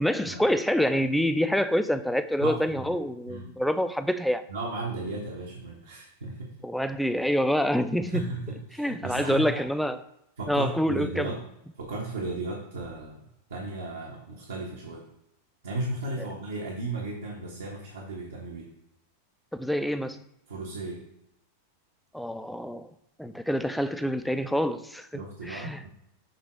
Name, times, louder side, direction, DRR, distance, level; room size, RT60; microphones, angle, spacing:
voice 1, 0.0-4.4 6.6-8.3 8.8-10.0 10.5-11.4 19.6-20.2 22.1-22.9 23.2-25.8, equal, ahead, 0.4 m, -27 dB
voice 2, 2.4-2.9 3.3-3.5 4.5-6.5 8.0-9.6 10.4-11.4 11.8-13.2 13.5-15.0 15.6-18.7 20.5-21.0 25.1-25.9, right 2 dB, 65° right, 1.2 m, -35 dB
6.8 x 3.7 x 4.5 m
figure-of-eight pair, 90°, 0 cm